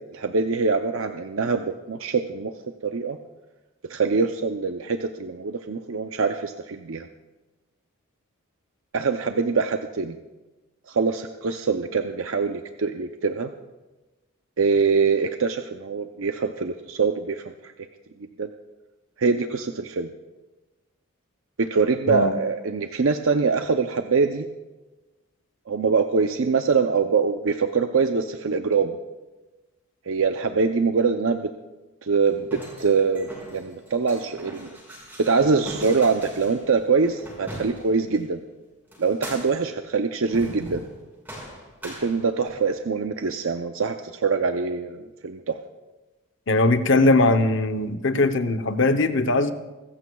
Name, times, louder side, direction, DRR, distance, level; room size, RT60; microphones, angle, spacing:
voice 1, 0.1-2.5 2.8-3.2 3.9-7.1 8.9-10.2 10.9-13.5 14.6-17.4 18.4-18.5 19.2-20.1 21.6-24.5 25.7-29.0 30.1-31.5 32.0-34.7 35.2-38.4 39.0-40.8 41.8-45.6, right 4 dB, 65° right, 6 dB, 0.6 m, -24 dB
sound 1, 32.2-38.2 38.9-39.7 40.3-41.0 41.3-42.7, equal, 10° right, 5.5 m, -41 dB
voice 2, 46.5-49.5, left 2 dB, 55° left, 9 dB, 0.8 m, -20 dB
25.0 x 14.5 x 2.3 m, 1.1 s
head